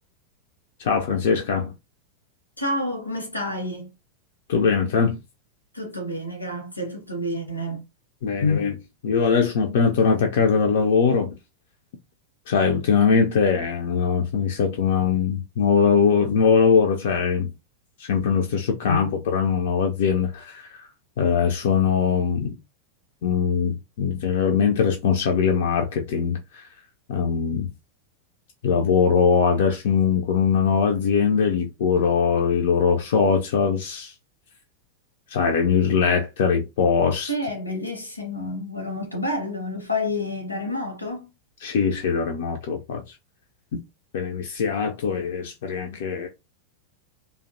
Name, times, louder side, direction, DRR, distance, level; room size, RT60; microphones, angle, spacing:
voice 1, 0.8-1.7 4.5-5.2 8.2-8.8 9.0-11.4 12.5-17.5 18.0-20.9 21.2-22.6 23.2-26.7 27.1-27.7 28.6-34.1 35.3-37.3 41.6-43.1 44.1-46.3, left 6 dB, 55° left, 0.3 m, -21 dB
voice 2, 2.6-3.9 5.7-7.8 37.3-41.3, left 1 dB, 85° left, 0.7 m, -29 dB
2.5 x 2.1 x 2.4 m
figure-of-eight pair, 90°, 0 cm